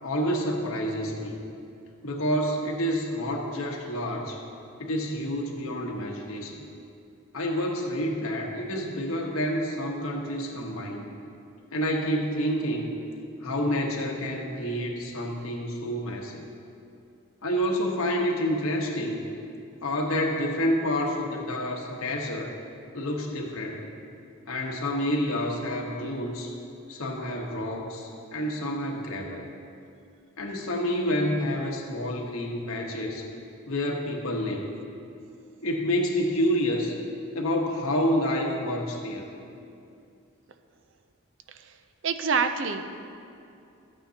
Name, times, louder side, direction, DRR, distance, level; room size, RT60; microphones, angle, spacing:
voice 1, 0.0-1.4 2.0-4.4 4.8-6.6 7.3-11.1 11.7-12.9 13.4-16.4 17.4-19.3 19.8-22.5 22.9-23.8 24.5-26.5 26.9-29.4 30.4-33.2 33.7-34.6 35.6-36.9 37.3-39.2, equal, 80° left, 0 dB, 1.2 m, -28 dB
voice 2, 42.0-42.9, right 5 dB, 60° right, 8 dB, 0.5 m, -26 dB
13.0 x 8.9 x 2.9 m, 2.6 s
head